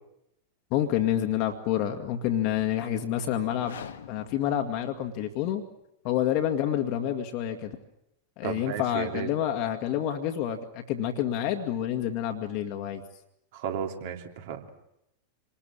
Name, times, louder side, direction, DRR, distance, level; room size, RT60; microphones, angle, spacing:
voice 1, 0.7-3.8 4.1-5.6 6.0-7.8 8.4-13.0, left 11 dB, 45° left, 5 dB, 2.0 m, -28 dB
sound 1, 3.4-5.5, left 8 dB, 65° left, 1.6 m, -46 dB
voice 2, 8.4-9.3 13.5-14.7, right 8 dB, 50° right, 4 dB, 3.1 m, -34 dB
27.0 x 20.5 x 8.8 m, 0.83 s
figure-of-eight pair, 90°, 0 cm